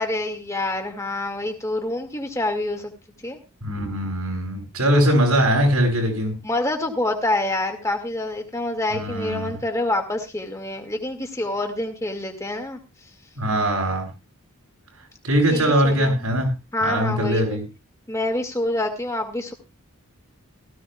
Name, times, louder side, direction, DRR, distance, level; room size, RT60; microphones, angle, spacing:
voice 1, 0.0-2.9 3.2-3.4 6.4-12.8 15.5-16.2 16.7-17.6 18.1-19.5, left 1 dB, 15° left, 4 dB, 2.1 m, -26 dB
voice 2, 3.6-6.3 8.9-9.6 13.4-14.1 15.2-16.5 16.8-17.6, equal, 85° right, 2 dB, 7.9 m, -21 dB
18.0 x 15.0 x 2.4 m, 0.29 s
head